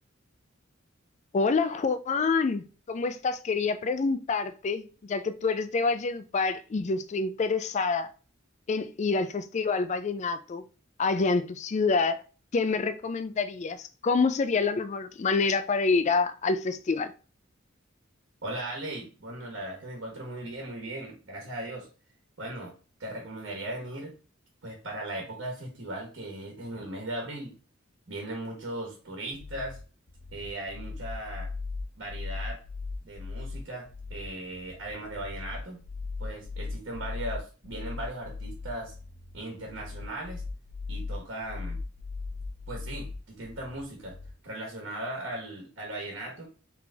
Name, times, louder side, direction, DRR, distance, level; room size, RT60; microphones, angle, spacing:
voice 1, 1.3-8.1 8.7-10.6 11.0-12.2 12.5-17.1, left 4 dB, 35° left, 0.4 m, -27 dB
voice 2, 18.4-21.9 22.4-22.7 23.0-24.1 24.6-27.5 28.1-29.8 30.3-31.5 32.0-32.6 33.0-35.8 36.2-38.9 39.3-40.4 40.9-41.8 42.7-44.2 44.4-46.5, right 1 dB, 65° right, 1.3 m, -38 dB
sound 1, 29.3-44.3, left 3 dB, 70° left, 1.2 m, -38 dB
3.8 x 3.3 x 3.4 m
head